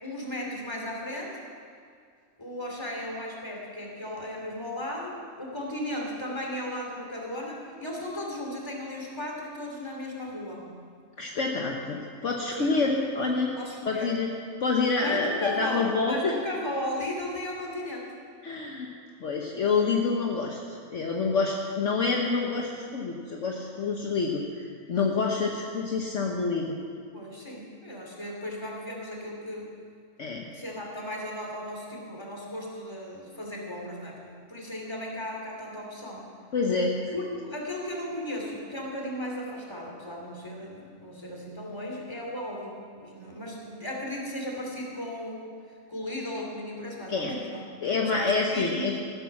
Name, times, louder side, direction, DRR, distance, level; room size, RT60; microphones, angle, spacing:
voice 1, 0.0-1.4 2.4-10.8 12.5-12.7 13.6-14.1 15.0-18.1 27.1-29.7 30.5-36.3 37.1-45.4 45.9-47.7 48.1-49.0, left 1 dB, 20° left, -1 dB, 2.8 m, -36 dB
voice 2, 11.2-13.6 13.8-14.3 14.6-16.3 18.4-18.9 19.2-20.6 20.9-26.8 30.2-30.5 36.5-37.0 47.1-47.3 47.8-49.0, left 4 dB, 60° left, 0 dB, 1.4 m, -27 dB
15.0 x 13.0 x 5.9 m, 2.2 s
omnidirectional pair, 1.5 m